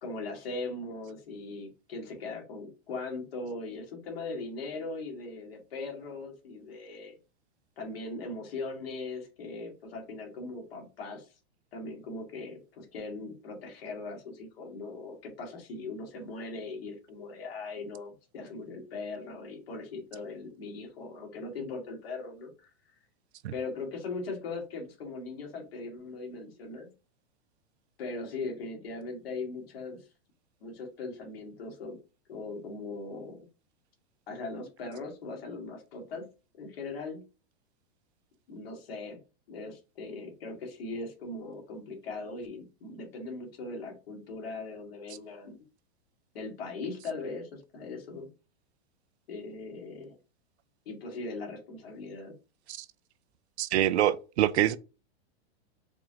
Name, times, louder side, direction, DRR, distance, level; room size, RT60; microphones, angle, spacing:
voice 1, 0.0-7.2 7.8-11.3 11.7-22.7 23.5-26.9 28.0-30.0 30.6-32.0 32.3-33.5 34.3-36.3 36.6-37.2 38.5-39.2 39.5-45.5 46.3-48.3 49.3-50.2 50.9-52.3, left 3 dB, 60° left, 1.8 m, -39 dB
voice 2, 53.6-54.8, right 12 dB, 80° right, 0.5 m, -25 dB
4.7 x 2.5 x 2.8 m
supercardioid pair, 180°, 33 cm